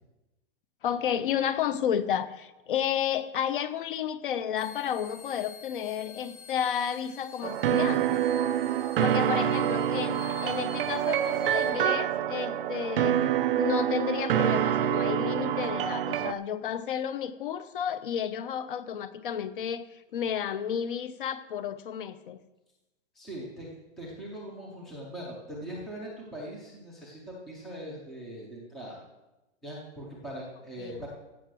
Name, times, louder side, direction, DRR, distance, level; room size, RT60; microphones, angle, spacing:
voice 1, 0.8-8.2 9.0-13.2 13.6-22.4 30.8-31.0, left 9 dB, 50° left, 14 dB, 0.8 m, -32 dB
sound 1, 4.6-11.7, left 7 dB, 80° left, 5.6 m, -49 dB
sound 2, 7.4-16.3, right 10 dB, 55° right, 0.5 m, -26 dB
voice 2, 8.9-9.5 23.1-23.7 24.0-29.0 29.6-31.1, right 1 dB, ahead, -3 dB, 0.4 m, -41 dB
15.5 x 6.7 x 6.2 m, 1.0 s
supercardioid pair, 180°, 34 cm